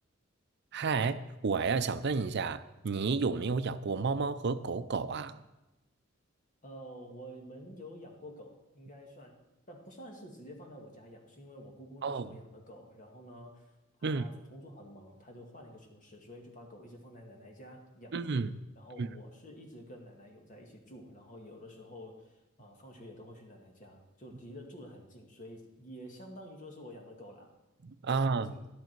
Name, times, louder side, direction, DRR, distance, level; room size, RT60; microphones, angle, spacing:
voice 1, 0.7-5.4 12.0-12.3 14.0-14.3 18.1-18.5 19.0-19.1 27.8-28.5, right 4 dB, 55° right, 0.5 m, -31 dB
voice 2, 6.6-9.4 9.7-13.7 14.0-18.4 18.7-27.5 28.1-28.7, equal, 40° left, 1.8 m, -50 dB
11.5 x 10.5 x 4.6 m
head